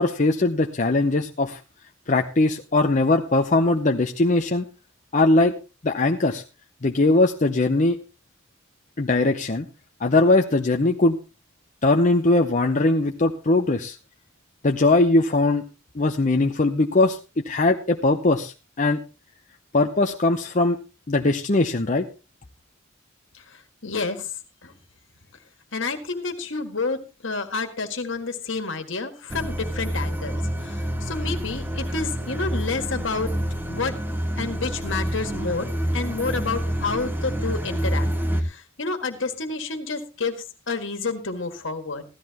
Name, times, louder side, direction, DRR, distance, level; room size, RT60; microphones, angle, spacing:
voice 1, 0.0-1.6 2.1-4.6 5.1-5.5 5.8-6.4 6.8-8.0 9.0-9.7 10.0-11.2 11.8-14.0 14.6-15.6 15.9-19.0 19.7-20.8 21.1-22.0, left 2 dB, 40° left, 4 dB, 0.8 m, -20 dB
voice 2, 23.8-24.3 24.6-24.7 25.7-27.0 27.2-33.3 33.7-34.0 34.4-38.1 38.4-40.4 40.7-42.0, left 4 dB, 65° left, 6 dB, 1.9 m, -29 dB
sound 1, 29.3-38.4, equal, 10° right, 1.3 m, -28 dB
15.5 x 13.0 x 3.0 m, 0.30 s
head